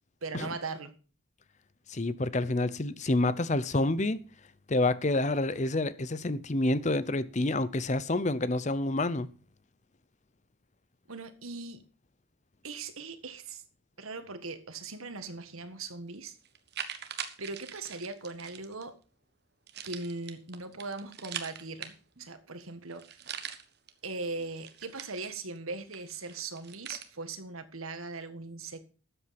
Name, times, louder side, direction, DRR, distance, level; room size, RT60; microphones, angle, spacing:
voice 1, 0.2-0.9 3.0-3.1 11.1-11.8 12.6-13.6 14.0-16.4 17.4-18.9 19.8-23.0 24.0-28.9, right 3 dB, 90° right, 1.7 m, -39 dB
voice 2, 1.9-4.2 4.7-9.3, left 2 dB, 35° left, 0.7 m, -28 dB
sound 1, 15.9-16.0 16.4-18.8 19.7-22.3 22.6-22.7 22.9-23.9 24.3-25.6 25.9-27.1, right 8 dB, 50° right, 1.3 m, -42 dB
13.0 x 7.9 x 5.9 m
head